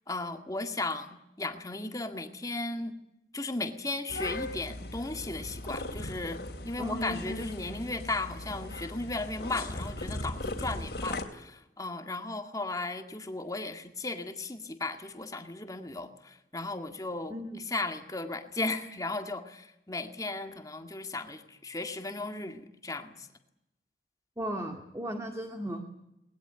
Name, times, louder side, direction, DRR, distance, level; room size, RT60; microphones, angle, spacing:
voice 1, 0.1-2.9 3.3-6.4 6.6-17.3 17.7-23.3, left 2 dB, 20° left, 6 dB, 2.0 m, -36 dB
sound 1, 4.1-11.2, left 2 dB, 65° left, 3.1 m, -38 dB
voice 2, 6.8-7.3 17.3-17.6 24.4-25.8, right 1 dB, 15° right, 4 dB, 2.2 m, -36 dB
21.0 x 20.5 x 9.8 m, 0.86 s
head